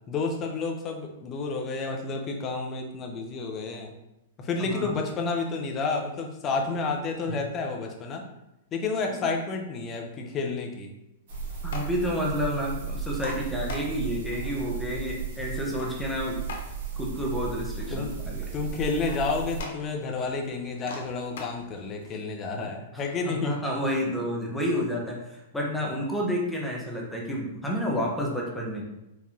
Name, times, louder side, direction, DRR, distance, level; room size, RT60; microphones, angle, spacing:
voice 1, 0.1-3.9 4.4-8.3 8.7-10.9 17.9-23.5, left 4 dB, 30° left, 2 dB, 0.9 m, -30 dB
sound 1, 11.3-22.1, left 3 dB, 70° left, 1.0 m, -45 dB
sound 2, 11.3-19.6, right 6 dB, 55° right, 1.6 m, -35 dB
voice 2, 11.6-16.5 16.9-18.5 22.9-28.8, equal, 5° left, -2 dB, 1.1 m, -30 dB
4.9 x 3.3 x 2.9 m, 0.89 s
hypercardioid pair, 125°, 0 cm